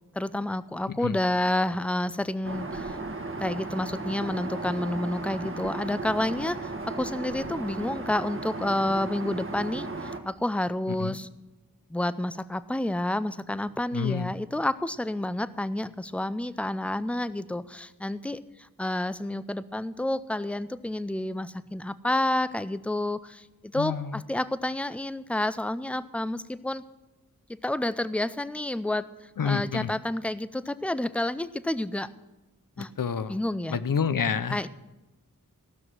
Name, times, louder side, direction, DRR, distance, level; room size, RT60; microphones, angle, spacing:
voice 1, 0.2-3.0 3.4-11.3 11.9-18.4 18.8-26.8 27.6-29.1 29.4-32.1 32.8-32.9 33.3-33.8 34.5-34.7, left 1 dB, 5° left, 15 dB, 0.4 m, -29 dB
Aircraft, 2.4-10.2, right 3 dB, 35° right, 1.3 m, -35 dB
voice 2, 13.9-14.3 23.7-24.2 29.4-29.9 33.0-33.4 33.7-34.7, left 6 dB, 70° left, 14 dB, 0.7 m, -28 dB
15.5 x 6.2 x 7.5 m, 1.1 s
wide cardioid pair, 60°, 34 cm